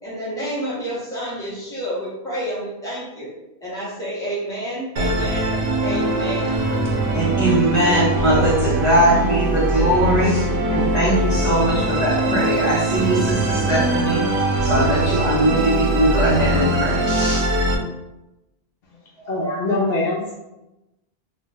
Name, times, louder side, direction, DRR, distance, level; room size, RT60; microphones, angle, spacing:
voice 1, 0.0-3.3 3.6-6.6, right 1 dB, 5° left, -9 dB, 0.9 m, -29 dB
Musical instrument, 5.0-17.8, right 1 dB, 85° right, 0.8 m, -21 dB
voice 2, 7.1-14.2 14.6-17.4, right 1 dB, 45° left, -6 dB, 0.9 m, -20 dB
voice 3, 8.3-9.4 18.9-20.3, left 2 dB, 70° left, -4 dB, 0.8 m, -26 dB
2.4 x 2.2 x 3.3 m, 0.96 s
omnidirectional pair, 1.1 m